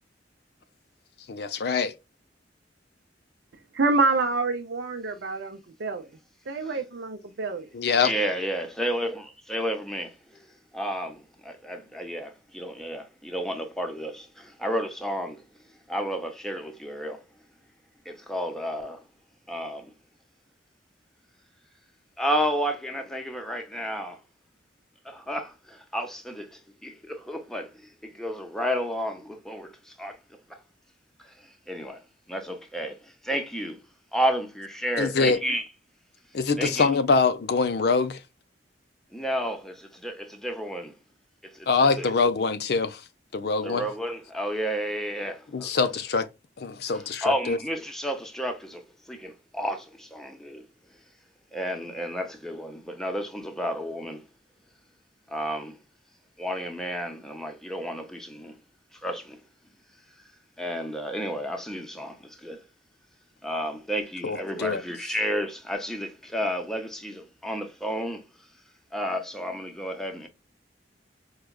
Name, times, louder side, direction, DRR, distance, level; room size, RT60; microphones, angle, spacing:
voice 1, 1.3-1.9 7.7-8.1 35.0-35.4 36.3-38.2 41.7-43.0 43.3-43.9 45.5-46.3 46.6-47.6 64.2-64.8, left 4 dB, 60° left, 0.5 m, -24 dB
voice 2, 3.7-6.1 6.5-7.7, right 3 dB, 70° right, 0.5 m, -27 dB
voice 3, 8.0-10.5 10.7-15.4 15.9-17.2 18.1-19.0 19.5-19.9 22.2-24.2 25.0-30.2 30.5-30.6 31.2-32.0 32.3-33.8 34.1-35.7 36.6-36.9 39.1-40.9 41.4-41.7 42.0-42.1 43.6-45.8 46.9-48.8 49.1-50.6 51.5-54.2 55.3-55.8 56.4-58.6 58.9-59.4 60.6-62.6 63.4-68.2 68.9-70.3, equal, 5° left, 0.6 m, -31 dB
4.8 x 2.2 x 2.2 m
head